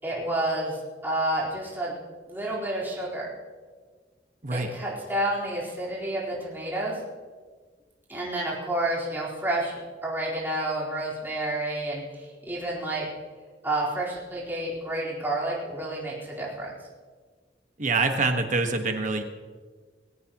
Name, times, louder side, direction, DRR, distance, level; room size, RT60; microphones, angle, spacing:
voice 1, 0.0-1.9 2.3-3.3 4.5-7.0 8.1-13.1 13.6-16.7, right 1 dB, 10° right, -7 dB, 4.3 m, -30 dB
voice 2, 17.8-19.2, right 3 dB, 45° right, 5 dB, 1.5 m, -25 dB
21.0 x 17.0 x 3.0 m, 1.5 s
head